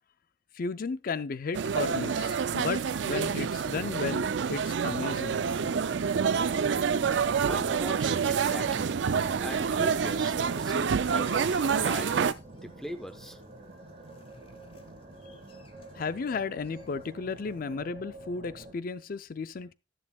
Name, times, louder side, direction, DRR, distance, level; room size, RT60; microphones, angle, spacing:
voice 1, 0.5-5.5 15.9-19.7, left 4 dB, 50° left, 0.4 m, -34 dB
sound 1, 1.5-12.3, right 6 dB, 75° right, 0.4 m, -27 dB
sound 2, 3.7-18.7, right 1 dB, 40° right, 2.1 m, -45 dB
voice 2, 7.4-8.9 9.4-12.2 12.5-13.4, equal, 5° left, 0.7 m, -41 dB
sound 3, 9.2-16.1 16.6-17.4 17.7-17.8, left 4 dB, 30° left, 1.1 m, -51 dB
11.0 x 10.5 x 2.3 m
head